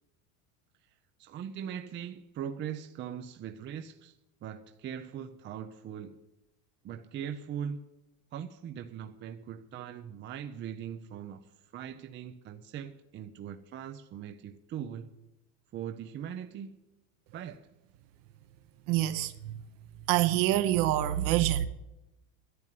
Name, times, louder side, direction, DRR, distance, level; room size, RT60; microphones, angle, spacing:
voice 1, 1.2-6.2 6.8-7.9 8.3-15.2 15.7-16.8 17.3-17.7, right 8 dB, 25° right, 0.5 m, -40 dB
voice 2, 18.9-19.5 20.1-21.7, right 13 dB, 50° right, 0.9 m, -26 dB
11.0 x 8.1 x 9.5 m
supercardioid pair, 130°, 42 cm